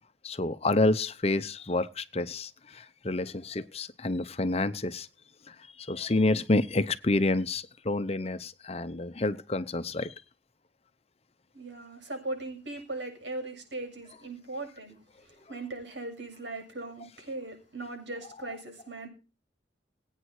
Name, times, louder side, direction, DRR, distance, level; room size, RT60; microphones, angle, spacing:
voice 1, 0.2-5.1 5.5-10.1, left 2 dB, 35° left, 0.8 m, -29 dB
voice 2, 11.5-19.1, right 2 dB, 80° right, 7.3 m, -39 dB
22.5 x 9.1 x 4.8 m
head